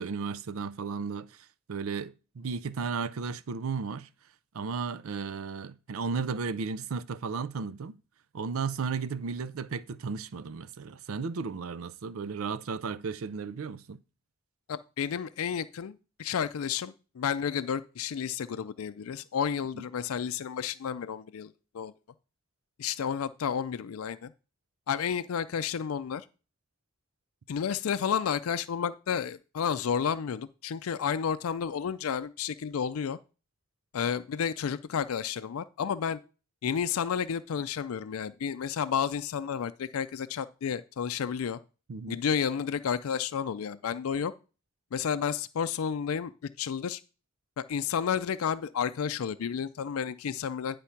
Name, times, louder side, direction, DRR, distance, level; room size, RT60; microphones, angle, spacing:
voice 1, 0.0-4.1 4.5-8.0 8.3-14.0 19.7-19.8 41.9-42.2, right 5 dB, 85° right, 0.5 m, -34 dB
voice 2, 14.7-21.9 22.8-24.3 24.9-26.2 27.5-33.2 33.9-36.2 36.6-41.6 42.1-44.3 44.9-46.3 46.6-47.0 47.6-50.8, left 7 dB, 90° left, 0.4 m, -31 dB
9.8 x 3.5 x 5.7 m
head